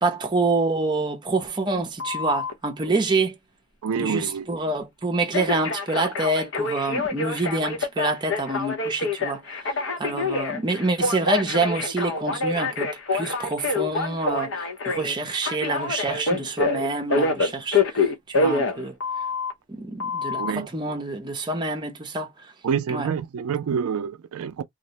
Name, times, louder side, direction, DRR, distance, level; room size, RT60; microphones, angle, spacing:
voice 1, 0.0-3.3 4.0-9.4 10.0-18.1 18.4-19.0 19.7-22.3 22.9-23.1, right 2 dB, 20° right, 0.5 m, -26 dB
Telephone, 2.0-2.5 5.3-19.5 20.0-20.5, left 3 dB, 60° left, 0.7 m, -26 dB
voice 2, 3.8-4.5 20.3-21.0 22.6-24.6, right 7 dB, 85° right, 0.4 m, -28 dB
2.4 x 2.1 x 2.8 m
head